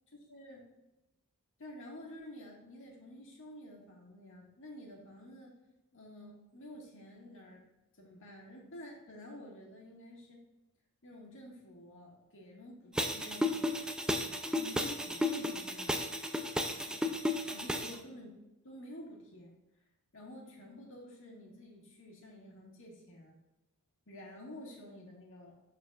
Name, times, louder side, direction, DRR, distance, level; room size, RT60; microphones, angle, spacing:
voice 1, 0.3-0.7 1.6-5.5 5.9-7.6 8.0-10.5 11.0-13.5 14.5-16.0 16.9-17.2 17.5-19.5 20.1-23.4 24.1-25.6, left 1 dB, 60° left, -1 dB, 1.9 m, -50 dB
sound 1, 12.9-18.0, left 1 dB, 5° right, 0.4 m, -33 dB
12.0 x 4.3 x 2.5 m, 0.96 s
head